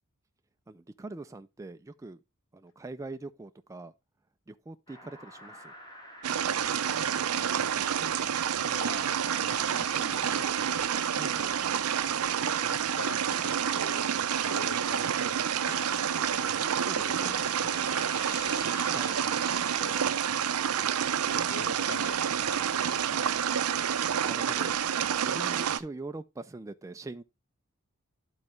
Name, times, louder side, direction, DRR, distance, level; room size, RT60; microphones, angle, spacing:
voice 1, 0.7-2.2 2.5-3.9 4.5-5.7 11.1-11.5 16.8-17.4 18.9-19.2 24.2-24.7 25.2-27.2, right 2 dB, 15° right, 0.3 m, -42 dB
sound 1, 4.9-20.6, left 1 dB, 20° left, 1.7 m, -48 dB
sound 2, 6.2-25.8, right 8 dB, 85° right, 0.5 m, -29 dB
voice 2, 7.4-8.3 8.6-11.1 11.9-12.1 12.4-14.1 14.4-16.5 17.0-18.5 19.5-20.2 21.0-23.6, left 3 dB, 60° left, 0.8 m, -46 dB
11.5 x 4.0 x 3.1 m
head